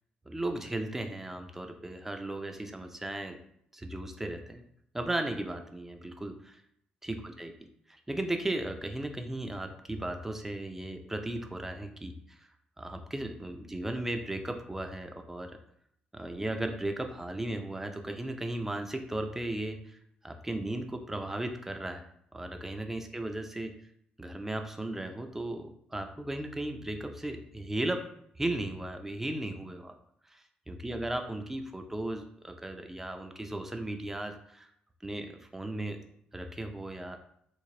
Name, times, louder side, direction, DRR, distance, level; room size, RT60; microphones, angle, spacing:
voice 1, 0.3-3.4 3.7-4.6 4.9-6.6 7.0-7.5 7.9-12.4 12.8-15.6 16.1-22.1 22.3-23.7 24.2-28.0 28.4-29.9 30.3-34.7 35.0-36.0 36.3-37.2, right 1 dB, 10° right, 5 dB, 0.4 m, -36 dB
3.1 x 2.5 x 3.7 m, 0.71 s
cardioid pair, 105°, 3 cm